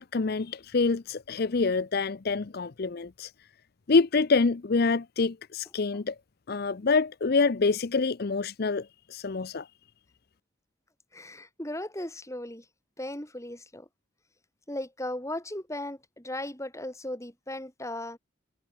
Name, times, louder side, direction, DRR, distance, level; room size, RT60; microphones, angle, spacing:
voice 1, 0.0-3.3 3.9-6.2 6.5-9.7, left 4 dB, 50° left, 0.6 m, -26 dB
voice 2, 11.1-12.6 13.0-13.9 14.7-18.2, left 1 dB, 15° left, 3.8 m, -37 dB
head